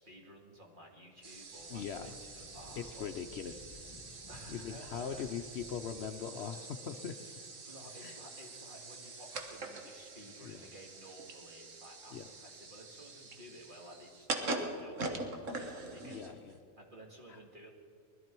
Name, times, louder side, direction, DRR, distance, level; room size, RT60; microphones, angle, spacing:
voice 1, 0.0-3.1 4.3-5.3 6.4-6.6 7.6-16.3 16.8-17.7, equal, 40° right, 0 dB, 2.1 m, -54 dB
sound 1, 1.2-16.6, right 2 dB, 65° right, 1.6 m, -44 dB
Wind, 1.4-6.2, left 3 dB, 30° left, 1.2 m, -57 dB
voice 2, 1.7-2.1 2.8-3.8 4.5-7.3 8.0-8.2 10.4-10.6 12.1-12.3 16.0-16.5, left 7 dB, 60° left, 7 dB, 0.8 m, -41 dB
20.5 x 12.5 x 4.5 m, 2.5 s
omnidirectional pair, 1.4 m